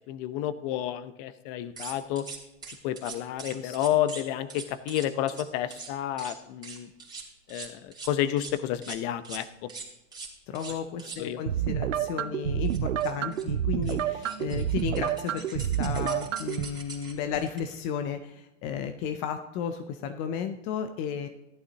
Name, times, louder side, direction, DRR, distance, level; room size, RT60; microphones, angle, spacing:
voice 1, 0.1-2.2 2.8-6.9 7.5-9.7 11.2-11.4 14.6-14.7, left 12 dB, 35° left, 14 dB, 0.7 m, -30 dB
sound 1, 1.8-4.2 4.5-5.4 5.7-5.9 6.2-6.3 6.6-8.5 8.8-9.0 9.2-9.4 9.7-11.2 12.0-12.1 12.3-12.4 12.6-13.4 13.8-13.9 14.2-17.8, right 4 dB, 10° right, 2.6 m, -42 dB
voice 2, 10.5-21.3, left 7 dB, 20° left, 7 dB, 0.3 m, -34 dB
sound 2, 11.5-16.6, right 10 dB, 80° right, 0.7 m, -29 dB
14.0 x 11.5 x 2.9 m, 0.95 s
hypercardioid pair, 115°, 37 cm